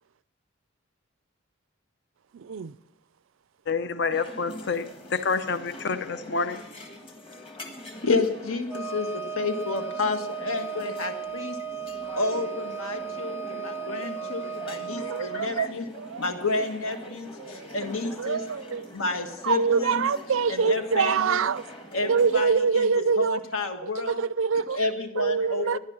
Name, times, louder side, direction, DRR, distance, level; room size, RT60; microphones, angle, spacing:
voice 1, 2.3-2.7 15.0-15.7 15.9-16.3 17.4-17.9 18.2-18.9 19.4-21.6 22.0-23.4 23.8-24.8 25.2-25.8, right 5 dB, 65° right, 0.4 m, -25 dB
voice 2, 3.7-6.6, left 5 dB, 55° left, 0.6 m, -28 dB
sound 1, 4.1-22.4, left 1 dB, 25° left, 1.6 m, -44 dB
voice 3, 8.0-11.6 12.2-15.8 16.2-18.4 18.9-20.0 20.5-21.4 21.9-24.2 24.7-25.8, left 3 dB, 75° left, 1.6 m, -30 dB
Wind instrument woodwind instrument, 8.7-15.4, right 7 dB, 10° right, 0.5 m, -35 dB
16.5 x 10.5 x 5.9 m
head